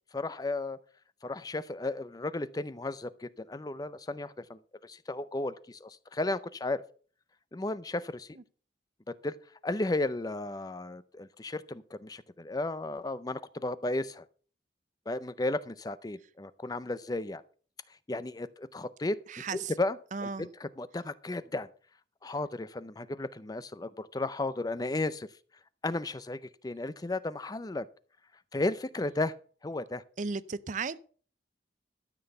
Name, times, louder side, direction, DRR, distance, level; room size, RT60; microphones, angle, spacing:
voice 1, 0.1-0.8 1.2-6.8 7.5-8.3 9.2-9.4 9.6-14.2 15.1-17.4 18.1-19.2 19.5-21.7 22.2-25.3 25.8-27.9 28.5-29.3 29.6-30.0, left 2 dB, 20° left, 0.5 m, -34 dB
voice 2, 19.3-19.7 20.1-20.5 30.2-31.0, right 4 dB, 45° right, 0.5 m, -35 dB
13.0 x 6.1 x 6.7 m
head